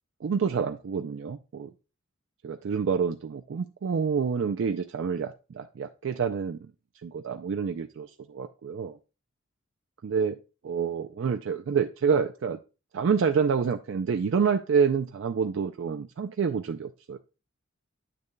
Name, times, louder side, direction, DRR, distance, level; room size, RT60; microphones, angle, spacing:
voice 1, 0.2-1.7 2.4-6.7 7.0-9.0 10.0-10.4 10.6-12.6 12.9-17.2, right 6 dB, 60° right, 7 dB, 0.3 m, -28 dB
8.6 x 6.7 x 2.2 m, 0.31 s
head